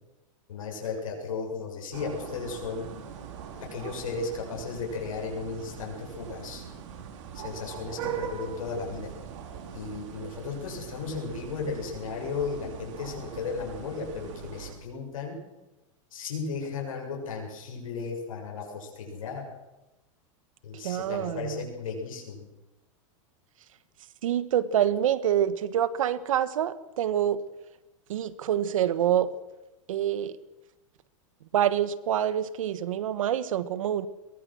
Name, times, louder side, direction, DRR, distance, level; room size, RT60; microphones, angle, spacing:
voice 1, 0.5-2.9 3.6-6.6 7.3-9.1 9.7-15.4 16.1-19.5 20.6-22.5, left 4 dB, 90° left, 0 dB, 7.3 m, -35 dB
sound 1, 1.9-14.7, right 8 dB, 65° right, 4.6 m, -41 dB
voice 2, 20.8-21.7 24.2-27.4 28.1-29.3 29.9-30.4 31.5-34.1, right 10 dB, 85° right, 15 dB, 1.5 m, -26 dB
22.0 x 21.0 x 6.4 m, 1.0 s
supercardioid pair, 130°, 17 cm